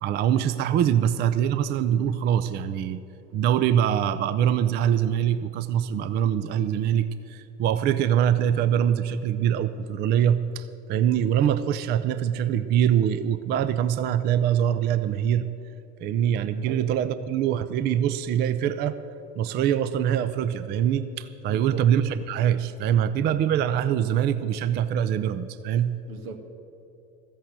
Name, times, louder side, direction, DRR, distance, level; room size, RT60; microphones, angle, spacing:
voice 1, 0.0-3.0 3.3-15.5 16.0-19.0 19.4-26.0, right 9 dB, 25° right, 13 dB, 0.4 m, -24 dB
voice 2, 16.6-17.0 21.5-21.9 26.1-26.4, right 3 dB, 65° right, 5 dB, 1.6 m, -40 dB
14.0 x 8.3 x 8.0 m, 2.8 s
figure-of-eight pair, 70°, 47 cm